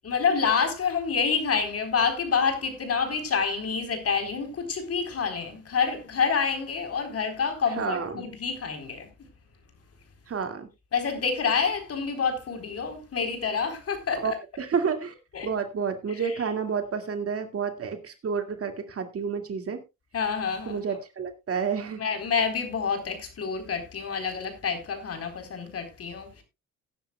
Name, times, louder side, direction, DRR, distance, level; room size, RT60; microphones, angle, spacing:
voice 1, 0.0-9.1 10.9-14.3 15.3-15.5 16.1-16.4 20.1-21.0 22.0-26.4, left 5 dB, 50° left, 4.0 m, -28 dB
voice 2, 7.8-8.2 10.3-10.7 14.2-15.1 15.4-19.8 20.7-22.0, right 6 dB, 50° right, 2.2 m, -30 dB
18.0 x 10.0 x 2.3 m
cardioid pair, 90°, 30 cm